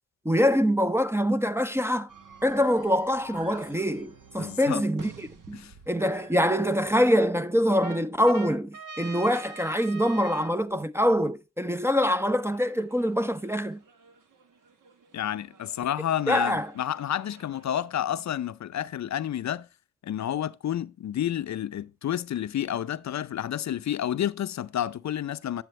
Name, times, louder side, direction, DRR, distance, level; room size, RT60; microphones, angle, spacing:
voice 1, 0.3-2.1 2.4-5.1 5.5-13.8 16.3-16.7, equal, 10° right, 0.5 m, -24 dB
sound 1, 2.1-7.3 7.8-10.6 12.0-17.8, right 4 dB, 75° right, 1.4 m, -47 dB
voice 2, 4.4-4.8 5.5-5.7 15.1-19.7 20.0-25.6, left 11 dB, 60° left, 0.5 m, -30 dB
9.2 x 7.0 x 3.2 m
cardioid pair, 70°, 32 cm